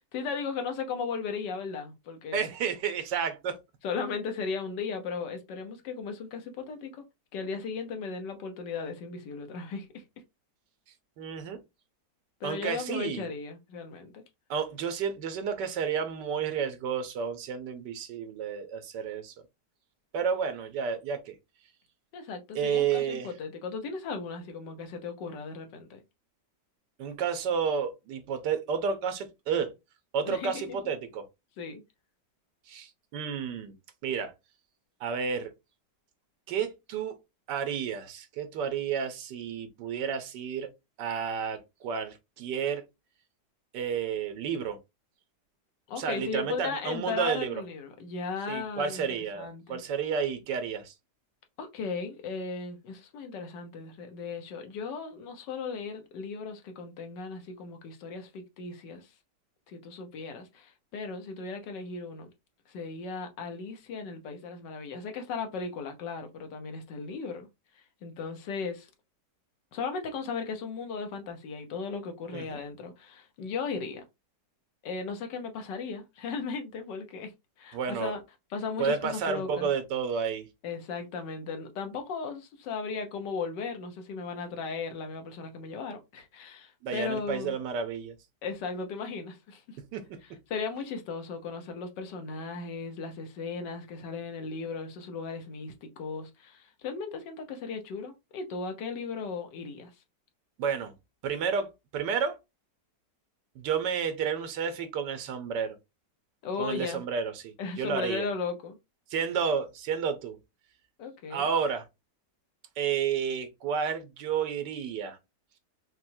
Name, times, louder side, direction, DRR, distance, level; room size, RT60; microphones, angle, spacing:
voice 1, 0.1-2.5 3.8-7.0 7.3-10.0 12.4-14.2 22.1-26.0 30.2-30.8 31.6-31.8 45.9-49.0 49.3-49.8 51.6-59.1 59.7-62.3 62.7-67.5 68.0-68.9 69.7-74.0 74.8-77.3 77.6-78.2 78.5-79.7 80.6-87.6 88.4-89.8 90.5-99.9 106.4-107.0 107.6-108.8 111.0-111.5, left 5 dB, 80° left, 1.5 m, -36 dB
voice 2, 2.3-3.6 11.2-11.6 12.4-13.3 14.5-19.3 20.1-21.3 22.5-23.3 27.0-29.7 30.1-31.3 32.7-33.7 34.0-34.3 35.0-35.5 36.5-37.1 37.5-40.7 41.0-42.8 43.7-44.8 46.0-47.5 48.5-50.9 72.3-72.6 77.7-78.1 78.8-80.5 86.8-88.1 89.9-90.2 100.6-100.9 101.2-102.4 103.5-105.8 106.6-108.3 109.1-110.4 111.3-111.8 112.8-115.2, right 6 dB, 80° right, 1.5 m, -31 dB
5.8 x 2.2 x 2.7 m
omnidirectional pair, 1.9 m